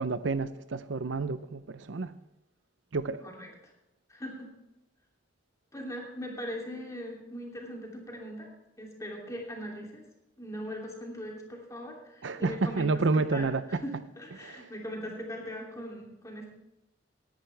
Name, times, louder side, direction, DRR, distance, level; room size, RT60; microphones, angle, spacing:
voice 1, 0.0-2.1 2.9-3.2 12.2-13.8 14.4-14.7, right 3 dB, 85° right, 0.6 m, -29 dB
voice 2, 4.1-4.5 5.7-8.5 8.8-10.0 10.4-13.9 14.2-16.5, equal, 20° left, 3.0 m, -40 dB
18.5 x 10.5 x 3.4 m
head